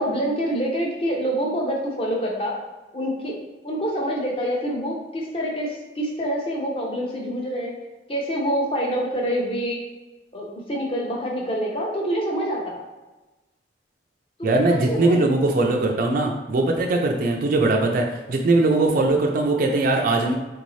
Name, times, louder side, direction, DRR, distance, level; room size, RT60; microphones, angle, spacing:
voice 1, 0.0-2.5 2.9-3.3 3.6-7.7 8.1-9.8 10.3-12.8 14.4-15.2, equal, 30° left, -2 dB, 0.7 m, -26 dB
voice 2, 14.4-20.4, right 2 dB, 50° right, 1 dB, 0.3 m, -20 dB
3.8 x 2.6 x 3.1 m, 1.1 s
head